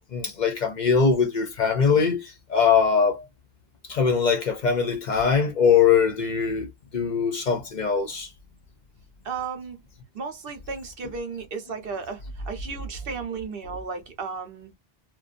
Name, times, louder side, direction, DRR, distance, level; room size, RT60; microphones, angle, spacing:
voice 1, 0.1-3.2 3.9-8.3, left 6 dB, 55° left, 0.6 m, -22 dB
voice 2, 9.2-9.8 10.1-14.7, right 5 dB, 65° right, 0.9 m, -34 dB
2.6 x 2.1 x 2.4 m
omnidirectional pair, 1.1 m